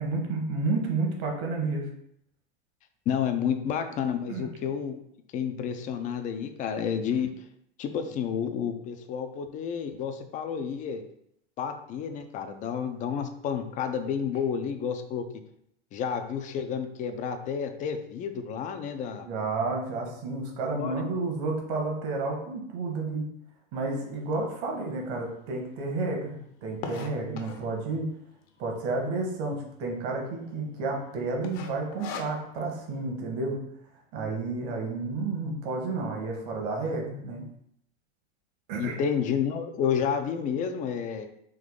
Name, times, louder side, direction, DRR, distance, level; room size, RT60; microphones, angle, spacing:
voice 1, 0.0-1.9 4.3-4.5 19.1-23.3 23.7-28.1 28.6-33.6 34.1-37.4 38.7-39.0, right 3 dB, 50° right, 1 dB, 1.3 m, -31 dB
voice 2, 3.1-5.0 5.3-7.3 7.8-11.0 11.6-15.2 15.9-19.3 20.8-21.0 38.8-41.3, left 7 dB, 25° left, 7 dB, 0.4 m, -30 dB
sound 1, 24.3-24.4 25.0-25.1 25.3-25.4 25.6-27.8 28.4-28.8 29.2-29.3 29.5-29.6 30.1-30.5 30.8-31.0 31.4-32.7, left 5 dB, 50° left, 0.8 m, -39 dB
3.7 x 2.7 x 3.8 m, 0.72 s
hypercardioid pair, 115°, 32 cm